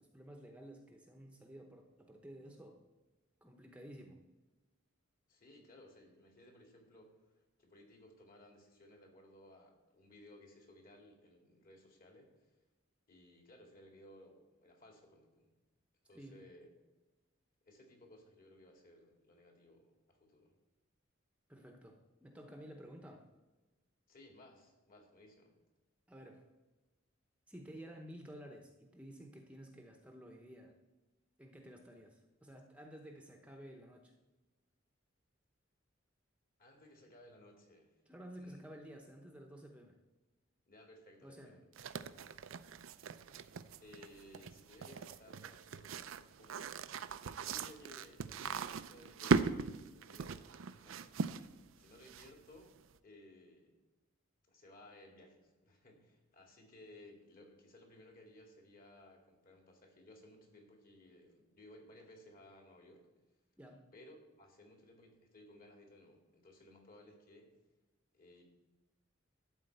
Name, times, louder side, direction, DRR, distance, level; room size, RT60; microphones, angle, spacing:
voice 1, 0.0-2.8 3.4-4.2 16.1-16.4 21.5-23.2 26.1-26.5 27.5-30.7 31.4-34.1 38.1-40.0 41.2-41.6 63.6-63.8, equal, 5° right, 3 dB, 0.8 m, -53 dB
voice 2, 5.3-7.1 7.6-12.3 13.1-15.5 16.0-16.7 17.7-20.5 24.1-25.5 36.6-37.9 38.4-38.7 40.7-41.7 42.2-42.4 43.8-46.7 47.2-51.0 51.8-52.8 53.0-53.8 54.5-63.0 63.9-67.5 68.1-68.4, left 1 dB, 45° left, 1 dB, 2.3 m, -59 dB
sound 1, 41.8-52.6, right 5 dB, 80° right, 0.5 m, -39 dB
12.5 x 4.3 x 7.9 m, 1.2 s
head